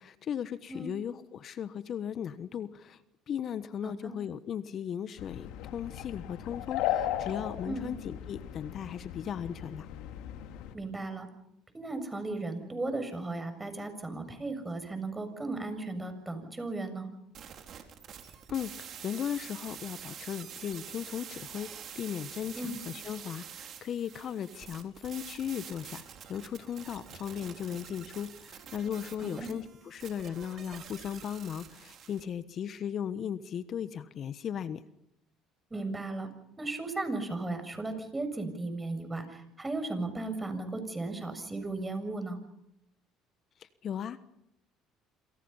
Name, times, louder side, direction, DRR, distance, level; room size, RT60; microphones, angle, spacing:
voice 1, 0.0-3.0 3.3-9.9 18.5-34.8 43.6-44.2, left 9 dB, 50° left, 13 dB, 1.3 m, -37 dB
voice 2, 3.8-4.1 7.7-7.9 10.7-11.3 11.7-17.1 22.6-22.8 29.2-29.5 35.7-36.3 36.6-42.4, right 2 dB, 15° right, 8 dB, 7.2 m, -36 dB
sound 1, 5.2-10.7, left 11 dB, 75° left, 2.4 m, -36 dB
sound 2, 17.3-32.2, right 8 dB, 55° right, 4.4 m, -47 dB
28.0 x 26.5 x 5.7 m, 0.81 s
hypercardioid pair, 70°, 0 cm